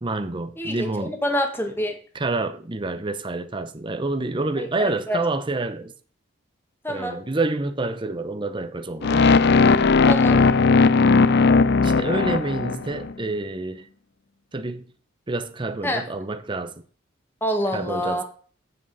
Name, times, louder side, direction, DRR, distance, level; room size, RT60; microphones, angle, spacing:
voice 1, 0.0-1.2 2.1-5.9 6.9-9.3 11.8-13.8 14.5-14.9 15.3-16.8 17.7-18.2, right 2 dB, 25° right, 0.7 m, -28 dB
voice 2, 0.6-1.9 4.6-5.2 6.8-7.2 10.0-10.4 15.8-16.0 17.4-18.2, equal, 10° left, 1.7 m, -26 dB
sound 1, 9.0-13.1, left 4 dB, 55° left, 0.5 m, -17 dB
8.1 x 7.4 x 4.0 m
head